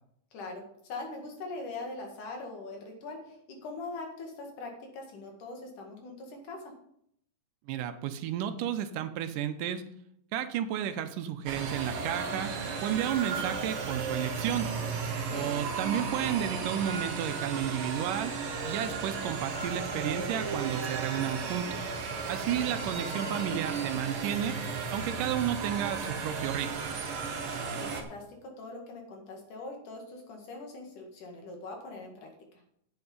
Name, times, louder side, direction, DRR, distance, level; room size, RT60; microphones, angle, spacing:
voice 1, 0.3-6.7 15.2-15.5 22.4-22.6 27.6-32.3, left 3 dB, 70° left, 2 dB, 3.4 m, -42 dB
voice 2, 7.7-9.8 10.3-14.7 15.3-18.3 18.6-21.9 22.3-24.6 24.9-26.7, right 10 dB, 85° right, 9 dB, 2.3 m, -32 dB
sound 1, 11.5-28.0, right 5 dB, 55° right, 1.7 m, -34 dB
9.6 x 8.3 x 5.4 m, 0.72 s
omnidirectional pair, 3.8 m